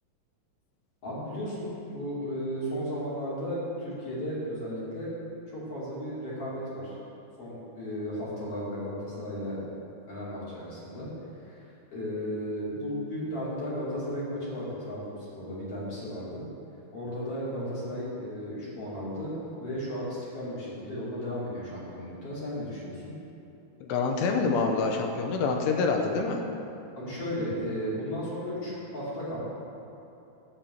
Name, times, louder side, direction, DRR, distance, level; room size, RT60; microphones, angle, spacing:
voice 1, 1.0-5.1 5.5-7.0 7.4-9.6 10.1-11.1 11.4-11.6 11.9-16.4 16.9-23.1 27.0-29.4, equal, 40° left, -8 dB, 3.0 m, -35 dB
voice 2, 23.8-26.4, left 4 dB, 85° left, 3 dB, 2.9 m, -26 dB
11.0 x 4.4 x 7.9 m, 2.9 s
omnidirectional pair, 4.8 m